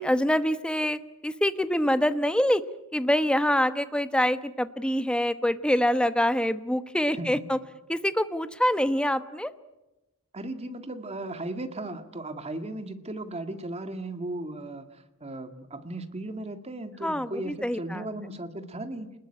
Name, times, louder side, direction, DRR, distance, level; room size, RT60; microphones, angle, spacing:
voice 1, 0.0-2.6 2.9-7.6 7.9-9.5 17.0-18.0, equal, 5° left, 12 dB, 1.0 m, -25 dB
voice 2, 7.1-7.5 10.3-19.1, right 2 dB, 30° right, 9 dB, 1.9 m, -36 dB
29.0 x 20.5 x 9.9 m, 1.0 s
head